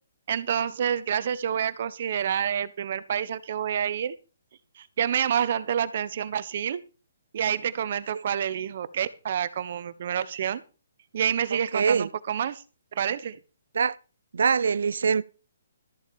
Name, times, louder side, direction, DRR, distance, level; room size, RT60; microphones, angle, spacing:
voice 1, 0.3-4.1 4.8-6.8 7.3-10.6 11.1-12.6 12.9-13.4, right 9 dB, 50° right, 1.2 m, -28 dB
voice 2, 11.7-12.1 13.7-14.0 14.3-15.2, right 6 dB, 70° right, 0.5 m, -23 dB
13.5 x 7.3 x 5.5 m
hypercardioid pair, 150°, 0 cm